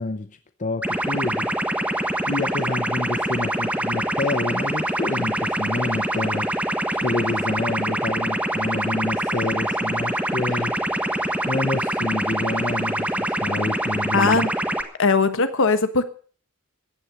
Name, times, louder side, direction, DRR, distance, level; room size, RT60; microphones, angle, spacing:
voice 1, 0.0-1.5 2.3-6.5 7.0-10.8 11.5-14.5, left 2 dB, 35° left, 10 dB, 0.7 m, -28 dB
sound 1, 0.8-14.8, right 1 dB, 5° right, 1.4 m, -25 dB
voice 2, 14.1-14.5 15.0-16.0, left 4 dB, 65° left, 11 dB, 1.4 m, -19 dB
15.0 x 9.8 x 6.7 m, 0.43 s
head